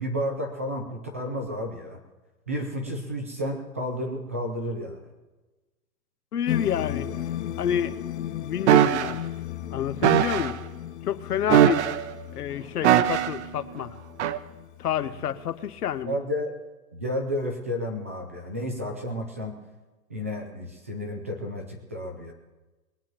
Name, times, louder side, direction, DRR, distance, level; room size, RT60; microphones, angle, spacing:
voice 1, 0.0-2.0 2.5-5.1 15.0-15.4 16.0-16.5 16.9-19.6 20.1-22.3, equal, 10° right, 3 dB, 0.3 m, -32 dB
voice 2, 6.3-7.1 7.6-8.0 8.4-9.2 9.7-10.6 11.0-11.9 12.4-14.0 14.8-16.2, left 9 dB, 90° left, 12 dB, 1.1 m, -28 dB
sound 1, 6.5-16.0, left 11 dB, 45° left, 1.2 m, -36 dB
sound 2, 8.7-9.1 10.0-10.5 11.5-12.1 12.8-13.4 14.2-14.4, right 11 dB, 50° right, 0.8 m, -20 dB
22.0 x 8.9 x 4.5 m, 1.2 s
hypercardioid pair, 150°, 45 cm